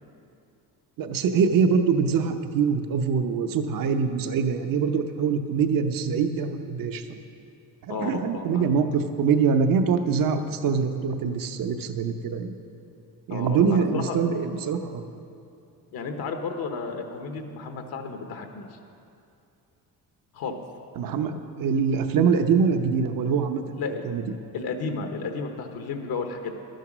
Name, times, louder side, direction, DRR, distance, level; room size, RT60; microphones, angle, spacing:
voice 1, 1.0-7.2 7.8-12.5 13.3-15.0 21.0-23.8 24.0-24.2, right 6 dB, 60° right, 7 dB, 0.9 m, -24 dB
voice 2, 7.9-8.6 13.3-14.2 15.9-18.8 20.3-20.6 23.8-24.0 24.5-26.5, left 4 dB, 75° left, 5 dB, 1.1 m, -33 dB
12.0 x 9.3 x 6.1 m, 2.6 s
cardioid pair, 115°, 38 cm